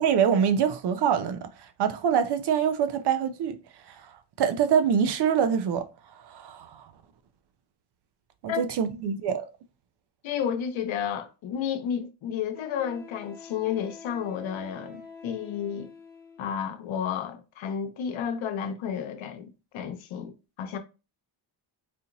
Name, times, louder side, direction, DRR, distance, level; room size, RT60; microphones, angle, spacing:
voice 1, 0.0-3.6 3.9-6.9 8.4-9.5, right 8 dB, 60° right, 0.5 m, -25 dB
voice 2, 10.2-15.9 16.4-20.8, left 8 dB, 90° left, 0.8 m, -32 dB
Wind instrument woodwind instrument, 11.2-11.3 12.5-16.6, left 4 dB, 20° left, 0.9 m, -47 dB
4.2 x 2.9 x 2.5 m
wide cardioid pair, 175°, 46 cm